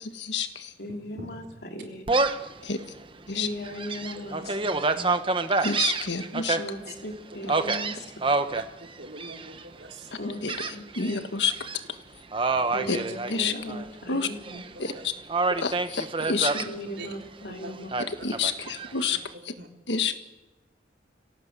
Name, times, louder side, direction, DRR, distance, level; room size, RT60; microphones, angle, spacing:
voice 1, 0.0-0.7 2.6-2.8 3.3-3.5 5.6-6.6 10.2-11.6 12.9-13.0 13.3-13.5 14.1-14.3 14.8-15.1 15.6-16.5 18.2-19.5 19.9-20.2, left 5 dB, 85° left, 9 dB, 1.6 m, -29 dB
voice 2, 0.8-2.0 3.3-5.1 6.6-8.0 10.2-11.2 12.6-14.7 16.3-17.9 18.3-18.4, left 1 dB, 65° left, 3 dB, 3.4 m, -38 dB
Gull seagull, 2.1-2.5 3.0-3.1 3.6-6.6 7.5-8.6 9.2-9.6 10.5-11.2 11.5-11.8 12.3-13.9 14.2-14.9 15.3-16.7 17.9-18.9, right 3 dB, 30° right, 1.1 m, -27 dB
voice 3, 4.3-4.7 6.9-7.0 7.5-7.6 8.5-10.3 12.5-13.1 14.1-14.2 14.7-15.1 17.0-17.1 17.6-17.7 18.0-18.2 19.6-19.7, right 2 dB, 75° right, 2 dB, 3.9 m, -43 dB
25.0 x 17.5 x 8.2 m, 1.1 s
head